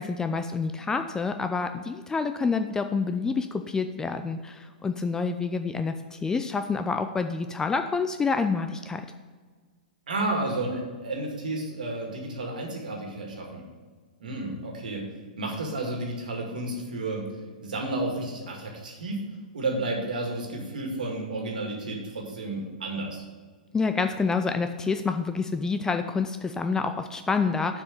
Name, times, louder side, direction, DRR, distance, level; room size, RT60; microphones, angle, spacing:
voice 1, 0.0-9.0 23.7-27.8, left 4 dB, 10° left, 7 dB, 0.4 m, -28 dB
voice 2, 10.1-13.6 14.2-15.1 15.4-17.3 17.6-19.2 19.5-23.2, right 2 dB, 70° right, 1 dB, 2.0 m, -31 dB
6.9 x 4.9 x 6.6 m, 1.5 s
figure-of-eight pair, 105°, 5 cm